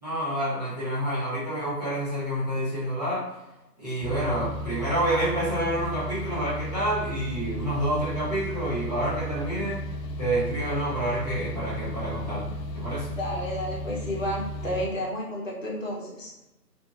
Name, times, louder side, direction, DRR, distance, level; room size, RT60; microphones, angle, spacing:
voice 1, 0.0-3.3 3.8-9.8 10.2-13.1, right 1 dB, 25° right, -12 dB, 0.9 m, -28 dB
sound 1, 4.0-14.9, equal, 80° left, 0.6 m, -34 dB
voice 2, 13.2-16.3, equal, 50° left, -5 dB, 0.9 m, -31 dB
2.8 x 2.7 x 2.3 m, 0.98 s
figure-of-eight pair, 160°, 49 cm